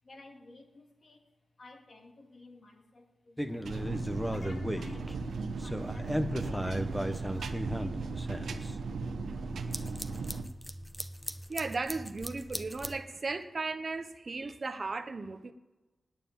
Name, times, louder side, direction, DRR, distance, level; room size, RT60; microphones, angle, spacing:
voice 1, 0.0-1.3 1.6-9.0, left 2 dB, 40° left, 3 dB, 1.9 m, -55 dB
sound 1, 3.4-5.2 5.5-8.8 9.5-13.0, equal, ahead, 0.6 m, -36 dB
sound 2, 3.6-10.4, right 4 dB, 80° right, 1.0 m, -37 dB
voice 2, 11.5-15.5, right 3 dB, 30° right, 8 dB, 0.6 m, -36 dB
9.2 x 9.0 x 9.3 m, 1.1 s
wide cardioid pair, 175°, 0 cm